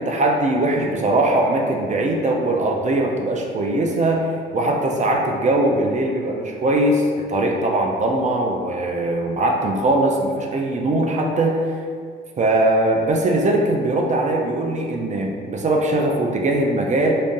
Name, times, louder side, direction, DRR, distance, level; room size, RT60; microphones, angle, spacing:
voice 1, 0.0-11.6 12.4-17.1, right 1 dB, 35° right, 1 dB, 0.4 m, -20 dB
3.6 x 2.5 x 2.5 m, 2.1 s
cardioid pair, 90°, 20 cm